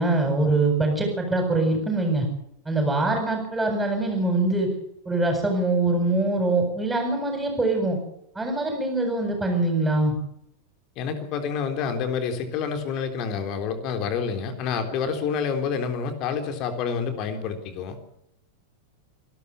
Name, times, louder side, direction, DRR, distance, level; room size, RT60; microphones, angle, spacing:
voice 1, 0.0-2.3 2.7-4.7 5.1-8.0 8.3-10.1, right 2 dB, 10° right, 1 dB, 7.5 m, -23 dB
voice 2, 11.0-18.0, left 6 dB, 40° left, 7 dB, 3.6 m, -28 dB
26.5 x 13.0 x 8.3 m, 0.76 s
figure-of-eight pair, 90°, 0 cm